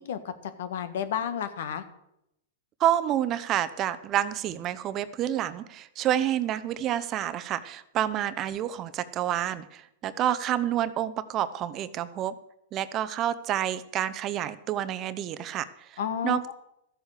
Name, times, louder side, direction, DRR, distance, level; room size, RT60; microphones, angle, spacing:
voice 1, 0.6-1.8 16.0-16.5, left 8 dB, 70° left, 11 dB, 1.5 m, -31 dB
voice 2, 2.8-12.3 12.7-16.5, right 11 dB, 35° right, 14 dB, 0.8 m, -29 dB
13.5 x 8.1 x 6.6 m, 0.82 s
hypercardioid pair, 125°, 0 cm